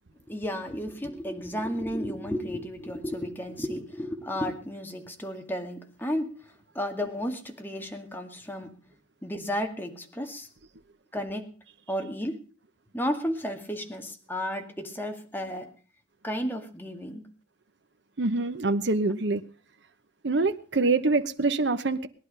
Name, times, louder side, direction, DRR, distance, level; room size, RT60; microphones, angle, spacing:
voice 1, 0.3-6.3 6.7-8.8 9.2-10.5 11.1-11.5 11.9-12.4 12.9-15.7 16.2-17.2, equal, 10° left, 2.1 m, -33 dB
voice 2, 18.2-19.4 20.2-22.1, right 3 dB, 65° right, 0.9 m, -25 dB
19.0 x 11.0 x 5.5 m
head